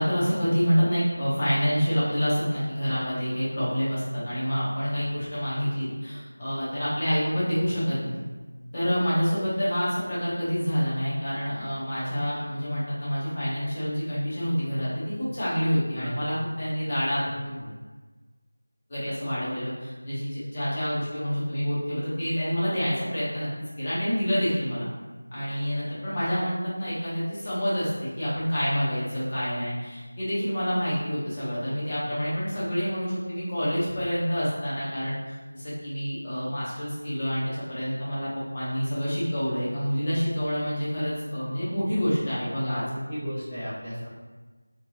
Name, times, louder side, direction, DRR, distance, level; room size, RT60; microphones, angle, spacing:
voice 1, 0.0-8.2 8.7-17.6 18.9-23.5 23.8-24.9 25.3-42.8, equal, 20° left, -10 dB, 0.9 m, -27 dB
voice 2, 17.2-17.7 42.7-44.1, equal, ahead, -22 dB, 0.5 m, -35 dB
3.8 x 2.4 x 2.9 m, 1.3 s
figure-of-eight pair, 175°, 0 cm